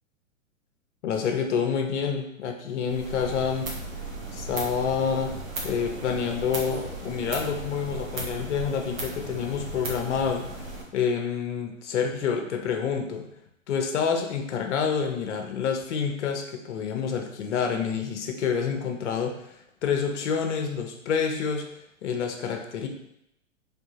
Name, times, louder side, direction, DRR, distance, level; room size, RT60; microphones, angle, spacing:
voice 1, 1.0-3.7 4.3-5.3 5.6-10.7 10.9-13.2 13.7-19.3 19.8-21.7 22.0-22.9, left 6 dB, 60° left, 4 dB, 0.8 m, -28 dB
sound 1, 2.9-10.8, right 2 dB, 75° right, 1.5 m, -36 dB
3.5 x 3.5 x 2.9 m, 0.79 s
hypercardioid pair, 115°, 40 cm